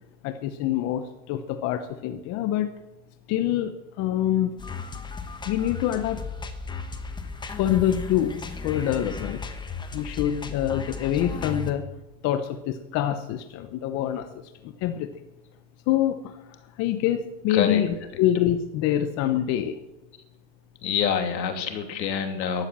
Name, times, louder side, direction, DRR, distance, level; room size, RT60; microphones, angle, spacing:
voice 1, 0.2-2.7 3.3-4.5 5.5-6.2 7.5-8.4 8.6-9.4 9.9-11.8 12.2-14.3 14.6-15.1 15.9-16.4 16.8-19.7, left 11 dB, 30° left, 9 dB, 0.8 m, -25 dB
sound 1, 4.6-11.7, left 4 dB, 10° left, 1.1 m, -35 dB
voice 2, 17.5-17.8 20.8-22.7, left 8 dB, 85° left, 6 dB, 2.9 m, -26 dB
14.0 x 11.5 x 7.5 m, 0.99 s
supercardioid pair, 140°, 50 cm